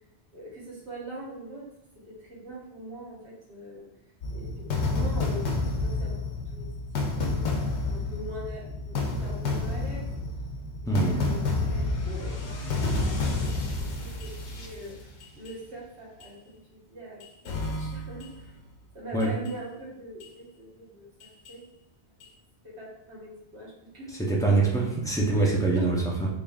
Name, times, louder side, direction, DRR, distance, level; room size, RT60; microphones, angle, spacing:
voice 1, 0.3-1.6 2.2-3.9 4.3-10.2 10.8-12.5 12.9-15.1 15.4-18.5 18.9-21.6 22.6-24.1 25.3-25.8, right 1 dB, 75° right, -6 dB, 1.5 m, -43 dB
sound 1, 4.2-15.5 16.2-16.3 17.2-18.5 19.2-19.5 20.2-20.3 21.2-21.5 22.2-22.3, left 3 dB, 85° left, 0.9 m, -30 dB
voice 2, 10.9-11.2 19.1-19.3 24.3-26.3, right 3 dB, 5° left, -3 dB, 0.4 m, -24 dB
3.7 x 3.5 x 2.3 m, 0.84 s
omnidirectional pair, 1.1 m